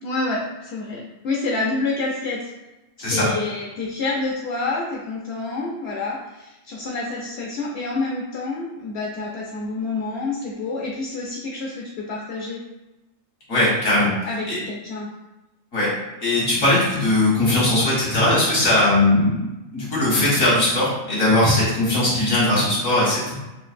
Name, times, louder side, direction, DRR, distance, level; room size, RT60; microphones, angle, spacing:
voice 1, 0.0-2.5 3.0-12.6 14.2-15.1, left 3 dB, 60° left, -2 dB, 0.8 m, -28 dB
voice 2, 13.5-14.1 14.5-14.6 15.7-15.9 16.2-23.3, left 1 dB, 85° left, -7 dB, 2.1 m, -19 dB
5.8 x 2.5 x 2.5 m, 1.0 s
omnidirectional pair, 1.3 m